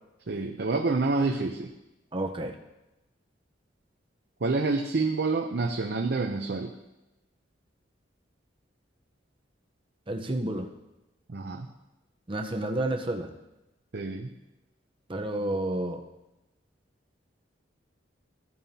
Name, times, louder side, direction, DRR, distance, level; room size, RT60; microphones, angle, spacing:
voice 1, 0.3-1.7 4.4-6.7 11.3-11.7 13.9-14.3, right 3 dB, 60° right, 3 dB, 0.6 m, -28 dB
voice 2, 2.1-2.6 10.1-10.7 12.3-13.3 15.1-16.0, right 1 dB, 30° right, 4 dB, 0.8 m, -30 dB
15.0 x 9.1 x 2.8 m, 0.98 s
head